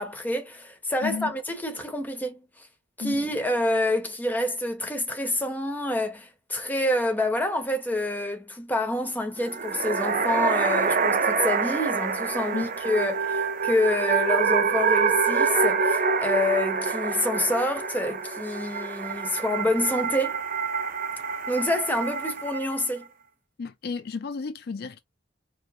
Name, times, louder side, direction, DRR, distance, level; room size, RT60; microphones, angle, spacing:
voice 1, 0.0-2.4 3.0-20.4 21.5-23.1, left 1 dB, 10° left, 1.0 m, -27 dB
voice 2, 1.0-1.3 3.0-3.2 12.5-12.7 23.6-25.0, left 5 dB, 55° left, 0.4 m, -33 dB
sound 1, 9.4-22.8, right 5 dB, 50° right, 0.7 m, -26 dB
4.8 x 2.0 x 3.5 m
head